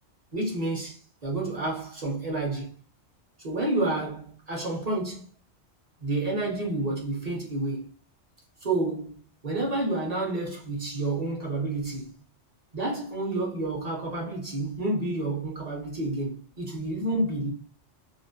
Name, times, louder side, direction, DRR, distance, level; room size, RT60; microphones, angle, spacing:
voice 1, 0.3-2.7 3.4-5.2 6.0-7.9 8.6-12.1 12.7-17.5, right 2 dB, 40° right, 0.7 m, -29 dB
2.4 x 2.0 x 2.6 m
omnidirectional pair, 1.2 m